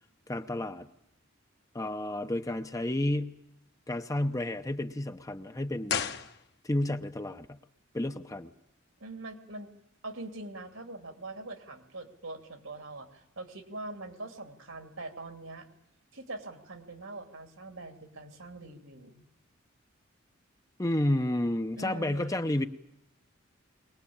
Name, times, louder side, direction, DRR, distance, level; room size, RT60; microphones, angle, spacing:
voice 1, 0.3-0.9 1.7-3.4 3.9-6.0 6.6-7.6 7.9-8.5 20.8-22.7, left 1 dB, 15° left, 8 dB, 0.8 m, -31 dB
sound 1, 5.8-7.0 7.2-7.3, left 7 dB, 55° left, 1.1 m, -34 dB
voice 2, 9.0-9.7 10.0-15.7 16.1-19.2 21.8-22.4, right 2 dB, 80° right, 7 dB, 2.8 m, -43 dB
22.5 x 20.0 x 8.7 m, 0.81 s
head